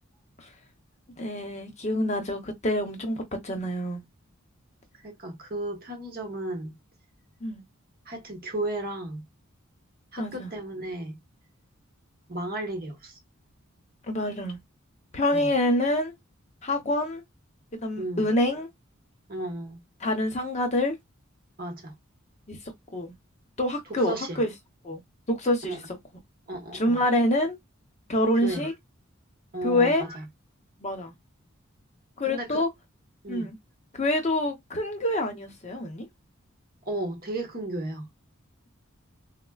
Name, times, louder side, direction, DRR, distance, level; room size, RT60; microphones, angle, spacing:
voice 1, 1.2-4.0 7.4-7.6 10.2-10.5 14.1-14.6 15.1-16.1 16.6-17.2 17.7-18.7 20.0-21.0 22.5-22.6 22.9-23.1 23.6-24.5 24.8-25.0 25.3-25.8 26.7-27.6 28.1-28.7 29.6-30.0 30.8-31.1 32.2-32.7 33.3-33.6 33.9-36.1, left 1 dB, 35° left, 0.8 m, -26 dB
voice 2, 5.0-6.8 8.1-9.2 10.1-11.2 12.3-13.1 15.3-15.5 18.0-18.3 19.3-19.8 21.6-21.9 23.9-24.4 25.6-25.8 26.5-27.0 28.4-28.7 29.5-30.3 32.3-32.6 33.2-33.5 36.8-38.1, right 1 dB, 45° right, 1.1 m, -34 dB
4.1 x 2.0 x 2.3 m
head